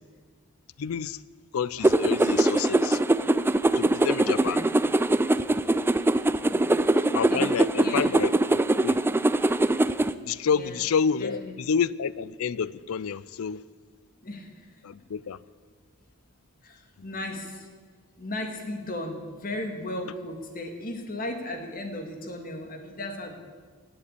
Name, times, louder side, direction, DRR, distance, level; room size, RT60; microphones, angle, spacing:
voice 1, 0.8-1.2 1.5-3.0 3.8-4.6 7.1-9.0 10.3-13.6 14.8-15.4, left 6 dB, 70° left, 19 dB, 0.4 m, -29 dB
sound 1, 1.8-10.1, right 2 dB, 10° right, 0.3 m, -22 dB
voice 2, 4.3-4.7 6.5-7.5 7.8-8.2 10.5-10.9 11.2-11.6 14.2-14.7 16.6-17.7 18.2-23.4, left 1 dB, 40° left, 4 dB, 1.9 m, -36 dB
17.0 x 7.5 x 8.5 m, 1.6 s
head